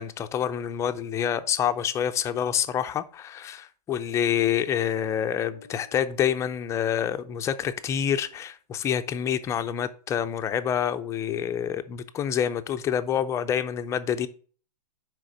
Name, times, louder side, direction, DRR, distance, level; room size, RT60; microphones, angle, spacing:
voice 1, 0.0-14.3, left 9 dB, 15° left, 0.5 m, -27 dB
sound 1, 4.7-7.4, left 2 dB, 90° right, 3.9 m, -51 dB
6.3 x 5.1 x 6.9 m
hypercardioid pair, 135°, 21 cm